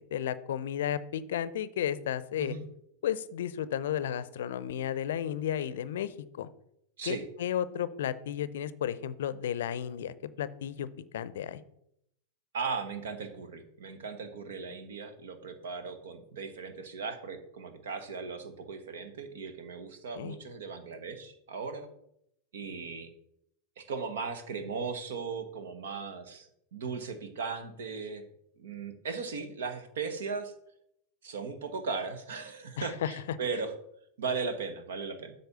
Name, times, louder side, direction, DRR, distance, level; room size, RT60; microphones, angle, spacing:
voice 1, 0.0-2.6 3.0-6.5 7.0-10.9 11.1-11.6 20.1-20.4 32.8-33.1, left 10 dB, 65° left, 17 dB, 0.5 m, -33 dB
voice 2, 12.5-21.9 22.5-23.1 23.8-28.3 28.6-30.5 31.2-33.7 34.2-35.3, right 5 dB, 70° right, 9 dB, 1.2 m, -37 dB
8.0 x 4.3 x 6.8 m, 0.76 s
figure-of-eight pair, 95°, 0 cm